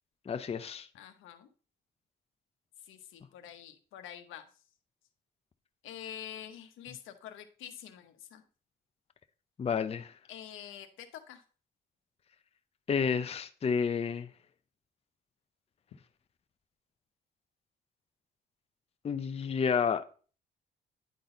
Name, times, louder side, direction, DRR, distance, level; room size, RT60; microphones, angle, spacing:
voice 1, 0.3-0.9 9.6-10.1 12.9-14.3 19.0-20.0, left 6 dB, 30° left, 0.5 m, -30 dB
voice 2, 0.9-1.5 2.8-4.4 5.8-8.4 10.3-11.4, left 10 dB, 85° left, 1.0 m, -46 dB
10.0 x 4.0 x 3.9 m
cardioid pair, 90°, 20 cm